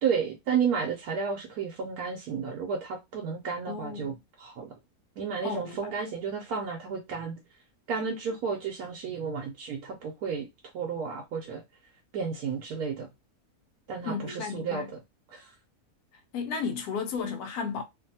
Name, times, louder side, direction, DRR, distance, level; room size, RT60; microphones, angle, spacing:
voice 1, 0.0-4.7 5.2-7.4 7.9-10.5 10.7-11.6 12.1-13.1 13.9-14.8 15.3-15.5, right 6 dB, 80° right, 1.1 m, -32 dB
voice 2, 3.7-4.2 5.4-6.0 14.0-14.9 16.3-17.8, left 5 dB, 85° left, 1.1 m, -34 dB
2.6 x 2.5 x 2.6 m
omnidirectional pair, 1.6 m